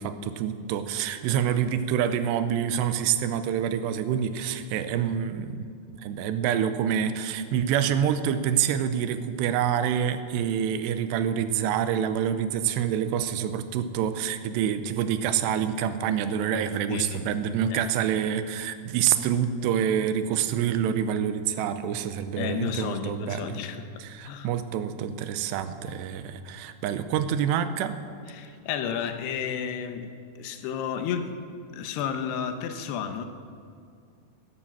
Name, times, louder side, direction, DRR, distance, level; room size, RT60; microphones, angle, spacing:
voice 1, 0.0-5.7 6.0-23.6 24.0-28.0, right 9 dB, 90° right, 10 dB, 2.9 m, -27 dB
voice 2, 16.9-17.4 17.7-17.8 22.4-23.9 24.2-24.5 28.3-31.3 31.7-33.3, left 7 dB, 80° left, 8 dB, 3.0 m, -32 dB
16.5 x 12.0 x 7.4 m, 2.3 s
omnidirectional pair, 4.8 m